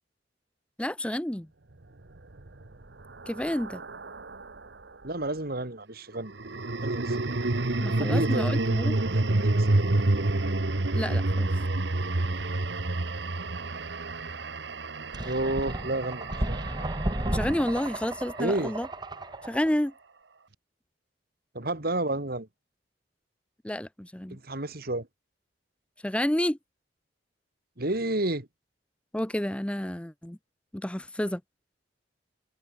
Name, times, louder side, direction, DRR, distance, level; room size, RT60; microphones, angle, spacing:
voice 1, 0.8-1.5 3.3-3.8 7.8-8.9 10.9-11.5 17.3-18.9 19.4-19.9 23.6-24.4 26.0-26.6 29.1-30.4 30.7-31.4, left 1 dB, 5° left, 0.7 m, -30 dB
sound 1, 2.2-4.7 6.3-18.6, right 2 dB, 75° right, 1.3 m, -29 dB
voice 2, 5.0-6.3 6.8-7.2 8.0-8.4 8.9-10.0 15.2-16.6 18.4-18.7 21.5-22.5 24.3-25.1 27.8-28.5, right 2 dB, 60° right, 2.9 m, -31 dB
sound 2, 15.1-19.7, right 1 dB, 25° right, 2.2 m, -33 dB
head